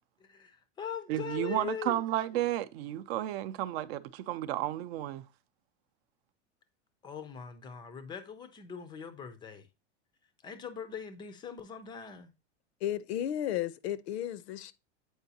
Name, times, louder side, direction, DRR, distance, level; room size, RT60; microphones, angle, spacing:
voice 1, 0.2-2.0 7.0-9.7 10.4-12.3, left 7 dB, 15° left, 0.4 m, -41 dB
voice 2, 1.1-5.2, right 13 dB, 60° right, 0.5 m, -32 dB
voice 3, 12.8-14.7, left 11 dB, 65° left, 0.6 m, -33 dB
8.0 x 4.6 x 2.7 m
supercardioid pair, 150°, 36 cm